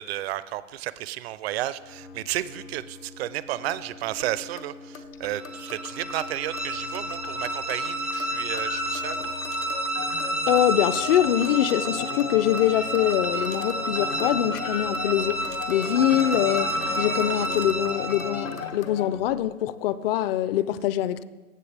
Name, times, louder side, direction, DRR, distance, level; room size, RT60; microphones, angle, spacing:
voice 1, 0.0-9.3, right 14 dB, 50° right, 16 dB, 0.5 m, -32 dB
sound 1, 1.8-19.2, left 5 dB, 85° left, 1.1 m, -37 dB
sound 2, 5.3-18.7, right 1 dB, 5° right, 0.4 m, -30 dB
voice 2, 10.5-16.7 17.0-21.2, left 12 dB, 45° left, 16 dB, 0.5 m, -24 dB
15.0 x 6.9 x 3.4 m, 1.2 s
hypercardioid pair, 125°, 40 cm